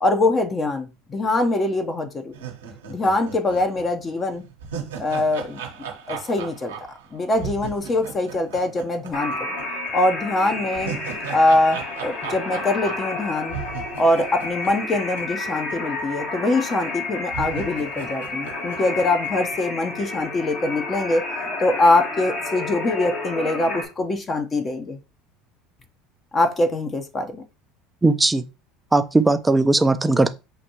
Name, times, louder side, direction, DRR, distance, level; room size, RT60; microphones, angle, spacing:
voice 1, 0.0-2.3 2.9-4.4 5.0-5.6 6.1-6.7 7.1-9.3 9.8-10.9 11.3-13.6 14.0-25.0 26.3-27.4, left 2 dB, 30° left, 0.8 m, -23 dB
sound 1, 2.3-9.6 9.9-10.0 10.5-15.7 16.0-16.1 16.8-16.9 17.3-19.6, right 7 dB, 85° right, 0.9 m, -37 dB
sound 2, 9.1-23.8, left 2 dB, 55° left, 1.6 m, -31 dB
voice 2, 28.0-28.4 28.9-30.3, right 2 dB, 10° right, 0.5 m, -18 dB
6.8 x 2.6 x 2.9 m
hypercardioid pair, 80°, 0 cm